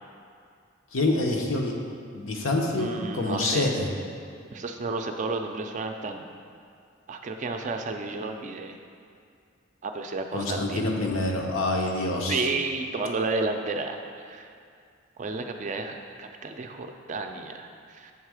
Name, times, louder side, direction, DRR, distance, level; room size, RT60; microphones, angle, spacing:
voice 1, 0.9-1.7 2.1-2.9 3.1-3.9 10.3-12.5, left 2 dB, 80° left, 0 dB, 0.8 m, -26 dB
voice 2, 2.8-3.7 4.5-6.3 7.1-8.7 9.8-10.9 12.3-14.5 15.2-18.1, right 3 dB, 40° right, 5 dB, 0.4 m, -32 dB
7.3 x 3.6 x 4.8 m, 2.3 s
head